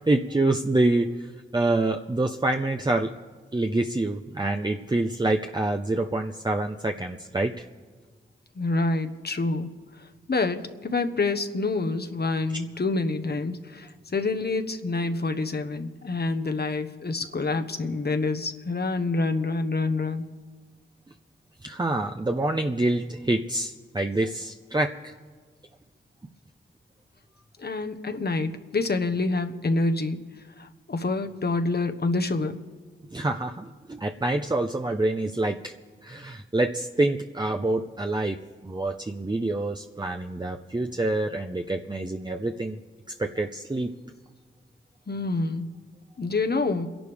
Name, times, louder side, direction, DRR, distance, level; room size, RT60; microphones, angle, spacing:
voice 1, 0.1-1.1 1.5-3.1 3.5-7.6 21.6-25.1 33.1-35.7 36.0-38.4 38.6-42.8 43.2-43.9, right 2 dB, 20° right, 4 dB, 0.8 m, -26 dB
voice 2, 8.6-9.7 10.3-20.3 27.6-30.2 30.6-32.6 45.1-45.7 46.2-46.9, left 3 dB, 50° left, 8 dB, 1.2 m, -27 dB
29.0 x 11.5 x 3.6 m, 1.4 s
cardioid pair, 45°, 21 cm